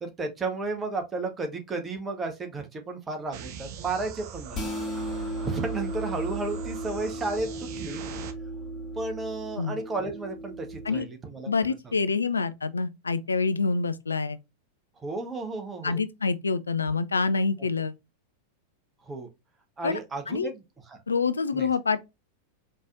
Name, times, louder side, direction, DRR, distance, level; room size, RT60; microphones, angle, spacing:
voice 1, 0.0-4.7 5.4-8.0 8.9-11.5 15.0-16.0 19.0-19.3 19.8-21.0 21.5-21.7, right 3 dB, 20° right, 1.0 m, -33 dB
sound 1, 3.3-8.3, right 7 dB, 45° right, 0.6 m, -42 dB
sound 2, 4.5-11.0, right 1 dB, 25° left, 1.4 m, -35 dB
voice 2, 11.5-14.4 15.8-17.9 19.8-20.0 20.3-20.5 21.1-22.0, left 4 dB, 75° left, 0.3 m, -26 dB
4.4 x 3.0 x 2.4 m
figure-of-eight pair, 90°, 0 cm